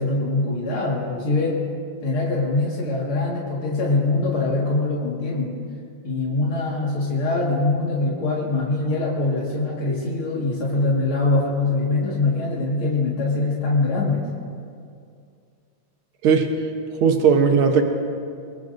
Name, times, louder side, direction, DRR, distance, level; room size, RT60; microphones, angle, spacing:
voice 1, 0.0-1.6 2.0-5.6 6.0-14.2, left 2 dB, 80° left, -4 dB, 2.8 m, -23 dB
voice 2, 17.0-17.8, right 6 dB, 80° right, 4 dB, 1.9 m, -17 dB
25.0 x 21.0 x 2.6 m, 2.3 s
omnidirectional pair, 2.3 m